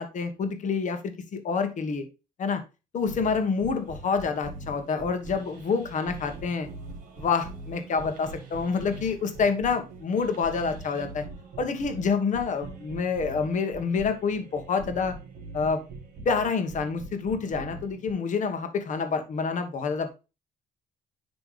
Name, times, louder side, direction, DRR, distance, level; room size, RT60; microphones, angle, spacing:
voice 1, 0.0-2.0 2.4-2.6 2.9-6.7 7.2-11.2 11.6-15.1 15.5-15.8 16.2-20.1, left 5 dB, 45° left, 7 dB, 1.4 m, -27 dB
sound 1, 3.0-18.1, right 3 dB, 55° right, 2.6 m, -43 dB
10.5 x 3.4 x 3.3 m, 0.29 s
cardioid pair, 110°, 17 cm